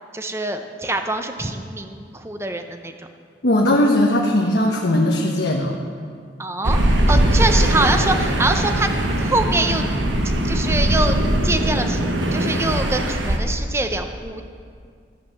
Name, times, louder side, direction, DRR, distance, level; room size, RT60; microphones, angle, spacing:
voice 1, 0.1-3.1 6.4-6.8 7.1-8.9 9.2-9.9 10.4-14.4, right 2 dB, 15° right, 6 dB, 0.6 m, -24 dB
voice 2, 3.4-5.7, left 1 dB, 70° left, -1 dB, 1.0 m, -18 dB
sound 1, 6.6-13.4, right 1 dB, 85° right, 1.2 m, -20 dB
13.5 x 7.9 x 6.3 m, 2.2 s
head